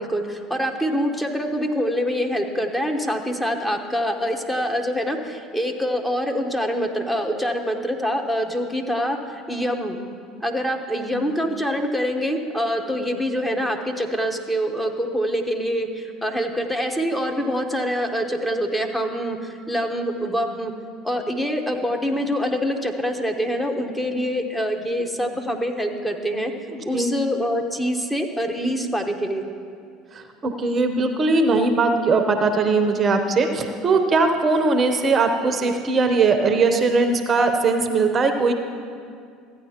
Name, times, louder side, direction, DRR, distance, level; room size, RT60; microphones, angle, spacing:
voice 1, 0.0-10.0 10.4-20.7 21.0-26.5 26.8-29.4, equal, 5° left, 2 dB, 1.0 m, -25 dB
voice 2, 26.7-27.1 30.1-38.5, right 3 dB, 35° right, 6 dB, 0.7 m, -20 dB
15.0 x 8.9 x 2.9 m, 2.3 s
hypercardioid pair, 70°, 0 cm